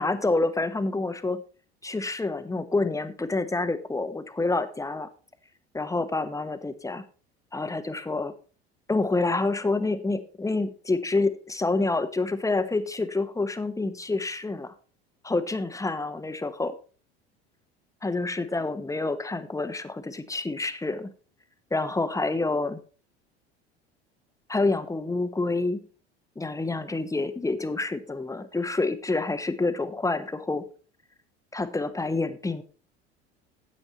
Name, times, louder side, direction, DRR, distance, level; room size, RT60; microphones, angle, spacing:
voice 1, 0.0-1.4 1.8-5.1 5.7-7.0 7.5-8.3 8.9-14.7 15.2-16.7 18.0-21.1 21.7-22.8 24.5-25.8 26.4-30.6 31.5-32.6, left 3 dB, 10° left, 10 dB, 1.1 m, -28 dB
9.2 x 8.7 x 4.2 m, 0.38 s
figure-of-eight pair, 70°, 32 cm